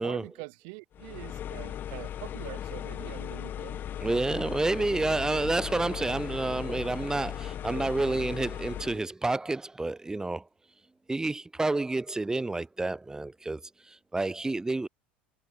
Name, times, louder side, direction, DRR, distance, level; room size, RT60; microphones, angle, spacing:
voice 1, 0.0-3.8, right 35 dB, 60° right, 1.0 m, -44 dB
sound 1, 0.9-9.0, left 10 dB, 40° left, 0.5 m, -37 dB
voice 2, 4.0-10.4 11.1-13.6 13.9-14.9, right 2 dB, 10° right, 1.4 m, -29 dB
figure-of-eight pair, 70°, 5 cm